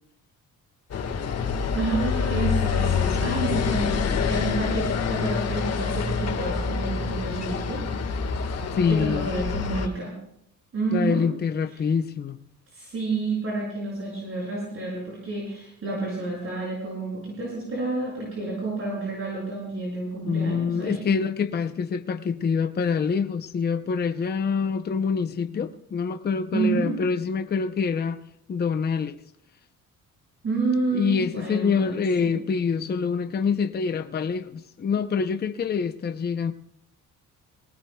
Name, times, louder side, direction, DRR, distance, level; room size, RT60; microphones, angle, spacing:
sound 1, 0.9-9.9, left 5 dB, 50° left, 1.7 m, -26 dB
voice 1, 1.7-7.8 8.9-10.1 10.7-11.3 11.7-11.8 12.7-21.1 26.5-26.9 30.4-32.3, right 3 dB, 45° right, 7.1 m, -29 dB
voice 2, 8.7-9.3 10.9-12.4 20.2-28.2 28.5-29.2 30.9-36.5, left 5 dB, 30° left, 0.7 m, -26 dB
22.5 x 18.5 x 2.3 m
cardioid pair, 125°, 32 cm